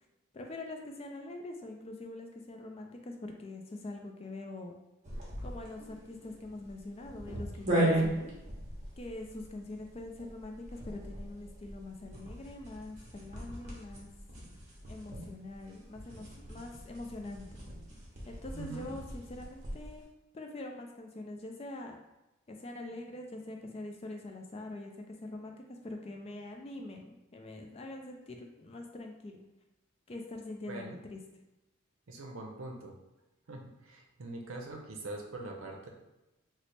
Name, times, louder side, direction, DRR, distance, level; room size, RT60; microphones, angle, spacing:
voice 1, 0.3-4.8 5.4-8.3 9.0-14.1 14.9-17.6 18.3-20.1 20.3-22.0 22.5-29.5 30.1-31.2, left 2 dB, 30° left, 2 dB, 0.3 m, -44 dB
sound 1, 5.0-20.0, right 1 dB, 35° right, 0.8 m, -38 dB
voice 2, 18.5-18.9 30.7-31.0 32.1-32.9 33.5-35.9, right 2 dB, 70° right, 1 dB, 0.6 m, -43 dB
3.1 x 2.0 x 4.1 m, 0.96 s
head